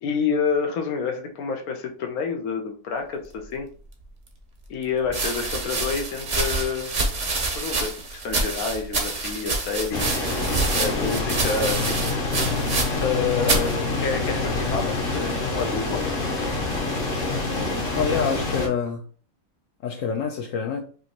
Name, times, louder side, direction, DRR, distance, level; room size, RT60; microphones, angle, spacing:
voice 1, 0.0-3.7 4.7-6.9 7.5-10.4 10.8-12.0 13.0-16.0, left 5 dB, 85° left, 3 dB, 1.2 m, -28 dB
sound 1, 4.0-4.1 5.0-13.2 13.4-13.7 14.5-14.9, right 3 dB, 45° right, 0.7 m, -27 dB
sound 2, 9.9-18.7, left 3 dB, 45° left, 1.0 m, -26 dB
voice 2, 18.0-19.0 19.8-20.8, left 6 dB, 70° left, 2 dB, 0.9 m, -26 dB
5.1 x 2.5 x 2.9 m, 0.42 s
omnidirectional pair, 1.5 m